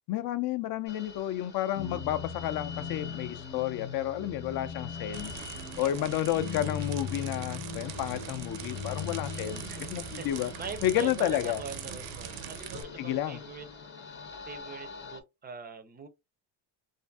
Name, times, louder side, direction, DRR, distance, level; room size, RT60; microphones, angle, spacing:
voice 1, 0.1-5.3 5.8-9.6 9.9-10.5 10.8-11.6 13.0-13.4, left 12 dB, 55° left, 0.5 m, -31 dB
sound 1, 0.9-15.2, left 5 dB, 25° left, 0.8 m, -47 dB
sound 2, 1.8-14.3, left 6 dB, 85° left, 0.8 m, -41 dB
sound 3, 5.1-12.8, right 9 dB, 75° right, 0.6 m, -42 dB
voice 2, 5.6-6.2 9.7-13.7 14.4-16.1, right 5 dB, 25° right, 0.4 m, -43 dB
2.6 x 2.5 x 2.2 m
cardioid pair, 135°, 44 cm